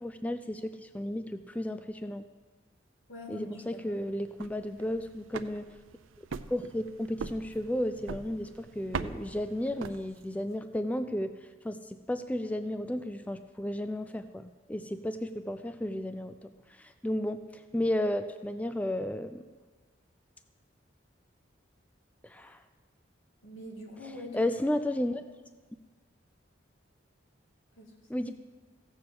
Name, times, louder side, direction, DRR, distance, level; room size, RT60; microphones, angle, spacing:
voice 1, 0.0-2.2 3.3-5.7 6.2-11.3 11.6-19.4 22.2-22.6 24.3-25.2 28.1-28.3, left 1 dB, 5° left, 9 dB, 0.3 m, -33 dB
voice 2, 3.1-4.0 23.4-24.5 27.7-28.3, left 1 dB, 75° left, 0 dB, 2.6 m, -44 dB
sound 1, 4.2-10.5, right 5 dB, 85° right, 0.5 m, -42 dB
15.5 x 6.8 x 7.8 m, 1.4 s
head